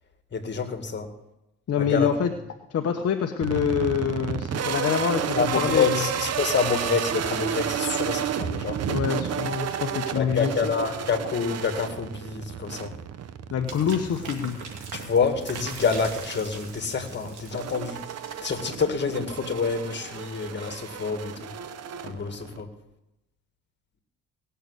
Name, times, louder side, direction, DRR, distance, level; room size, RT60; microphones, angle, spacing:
voice 1, 0.3-1.1 1.8-2.1 5.4-8.8 10.1-12.9 14.9-18.0 18.4-21.5 22.0-22.7, left 5 dB, 35° left, 7 dB, 1.9 m, -27 dB
voice 2, 1.7-2.3 2.7-6.1 8.9-10.7 13.5-14.6, left 8 dB, 55° left, 5 dB, 1.0 m, -26 dB
sound 1, 3.4-22.6, right 8 dB, 55° right, 0.9 m, -32 dB
sound 2, 13.7-19.2, right 5 dB, 85° right, 2.7 m, -42 dB
18.5 x 6.8 x 8.1 m, 0.92 s
cardioid pair, 90°, 30 cm